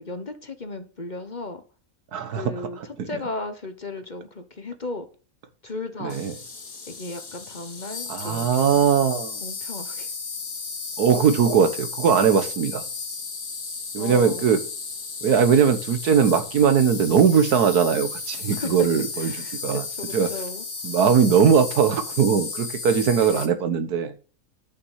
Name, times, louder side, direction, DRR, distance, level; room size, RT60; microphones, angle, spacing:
voice 1, 0.0-1.6 2.3-5.1 5.6-6.2 6.9-10.1 14.0-14.5 18.5-18.9 19.2-20.7 23.1-23.6, left 3 dB, 35° left, 1.1 m, -35 dB
voice 2, 2.1-2.4 6.0-6.3 8.1-9.4 11.0-12.8 13.9-14.6 15.2-19.3 19.6-19.8 20.1-20.3 20.8-24.1, right 7 dB, 85° right, 1.7 m, -20 dB
Insect, 6.1-23.5, left 4 dB, 60° left, 2.1 m, -34 dB
10.5 x 5.9 x 7.2 m
omnidirectional pair, 1.6 m